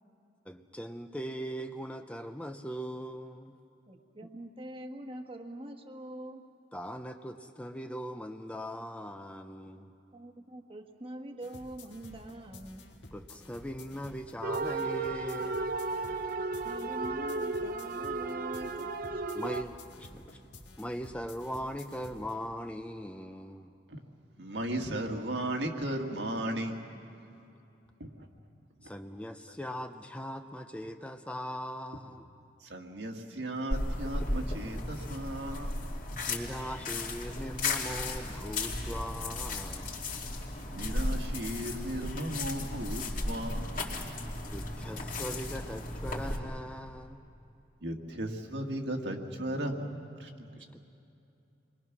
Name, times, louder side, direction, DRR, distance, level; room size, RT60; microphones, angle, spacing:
voice 1, 0.5-3.6 6.7-9.9 13.1-15.6 19.3-20.4 20.8-23.7 24.8-24.9 28.8-32.3 36.3-39.9 44.5-47.2 50.6-50.8, equal, 5° left, 6 dB, 0.6 m, -40 dB
voice 2, 3.9-6.4 10.1-12.8 16.3-18.8 19.1-19.2, right 1 dB, 30° right, 5 dB, 1.3 m, -44 dB
sound 1, 11.4-22.5, left 2 dB, 80° left, 1.8 m, -52 dB
sound 2, 14.4-19.6, right 3 dB, 50° right, 0.8 m, -34 dB
voice 3, 24.4-26.8 28.0-28.3 32.6-35.9 40.7-44.0 47.8-50.7, right 1 dB, 70° right, 2 dB, 1.9 m, -36 dB
sound 3, 33.7-46.4, left 2 dB, 50° left, 2.5 m, -35 dB
28.0 x 22.0 x 6.1 m, 2.7 s
head